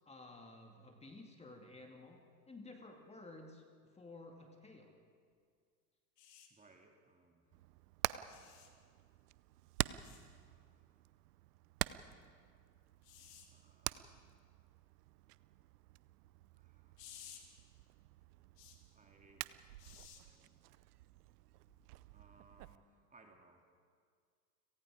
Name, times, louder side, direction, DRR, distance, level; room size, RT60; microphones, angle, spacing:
voice 1, 0.1-3.6 3.9-4.9, left 2 dB, 10° left, 2 dB, 2.2 m, -54 dB
sound 1, 6.2-6.5 8.3-8.7 10.0-10.2 13.0-13.5 17.0-17.4 18.6-18.8 19.8-20.2 21.7-21.9, left 9 dB, 75° left, 3.1 m, -56 dB
voice 2, 6.5-7.4 10.4-10.8 13.5-14.1 16.5-17.0 18.9-19.5 19.8-20.6 22.1-23.6, right 3 dB, 15° right, 2 dB, 2.3 m, -66 dB
Hammer, 7.5-22.8, right 16 dB, 65° right, 0.7 m, -46 dB
30.0 x 18.0 x 5.0 m, 2.1 s
hypercardioid pair, 100°, 49 cm